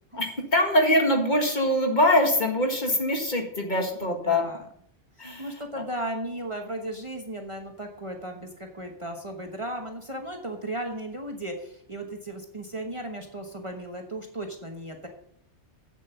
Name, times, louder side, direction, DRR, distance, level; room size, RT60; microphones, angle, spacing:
voice 1, 0.1-4.5 5.2-5.8, left 1 dB, 40° left, 2 dB, 1.9 m, -23 dB
voice 2, 3.9-4.7 5.2-15.1, right 1 dB, 30° right, 3 dB, 1.1 m, -36 dB
8.0 x 7.4 x 6.6 m, 0.69 s
omnidirectional pair, 1.2 m